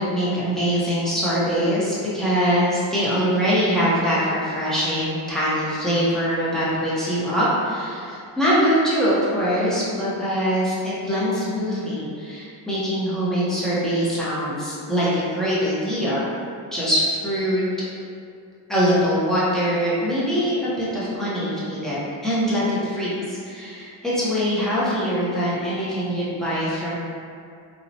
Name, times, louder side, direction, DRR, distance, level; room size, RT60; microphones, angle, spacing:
voice 1, 0.0-16.3 16.7-17.6 18.7-22.0 22.2-27.0, equal, ahead, -10 dB, 0.5 m, -23 dB
2.8 x 2.0 x 2.5 m, 2.4 s
wide cardioid pair, 145°, 47 cm